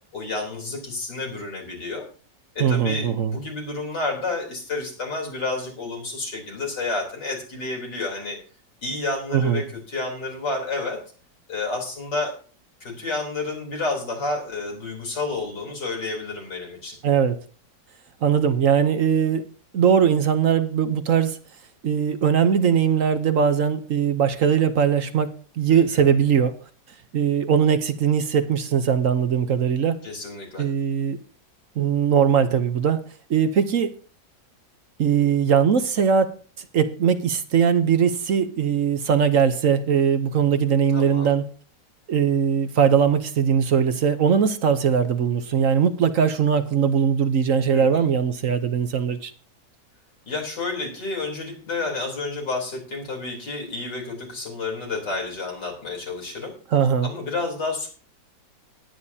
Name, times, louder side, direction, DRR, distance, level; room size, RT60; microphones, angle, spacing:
voice 1, 0.1-2.0 2.6-8.4 8.8-11.0 11.5-12.3 12.8-17.0 25.7-26.0 30.0-30.6 40.9-41.3 47.7-48.0 50.3-56.5 57.0-57.9, left 3 dB, 75° left, 0 dB, 4.2 m, -30 dB
voice 2, 2.6-3.4 9.3-9.6 17.0-17.4 18.2-19.4 19.7-21.4 21.8-25.3 25.6-26.5 27.1-30.0 30.6-31.2 31.8-33.0 33.3-33.9 35.0-41.5 42.1-49.3 56.7-57.1, right 7 dB, 55° right, 10 dB, 1.1 m, -20 dB
19.5 x 9.3 x 2.8 m, 0.40 s
omnidirectional pair, 1.9 m